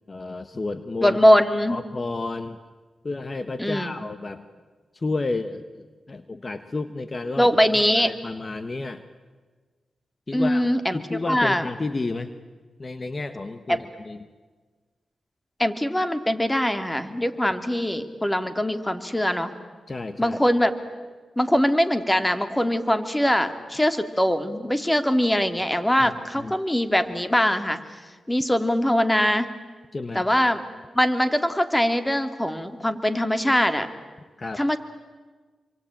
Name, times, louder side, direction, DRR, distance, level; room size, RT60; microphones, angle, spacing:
voice 1, 0.1-1.2 1.7-2.6 3.0-4.4 4.9-7.5 8.0-9.0 10.3-10.7 10.9-12.3 12.8-14.3 19.9-20.4 26.0-26.5 29.9-30.2 34.4-34.6, left 3 dB, 40° left, 10 dB, 1.3 m, -31 dB
voice 2, 1.0-1.8 3.6-3.9 7.4-8.1 10.3-11.0 11.3-11.7 13.7-13.8 15.6-19.5 20.2-20.7 21.4-27.8 28.3-29.5 30.1-30.6 30.9-33.9 34.6-34.8, equal, 10° left, 9 dB, 2.4 m, -22 dB
27.0 x 24.5 x 9.0 m, 1.4 s
cardioid pair, 55°, 0 cm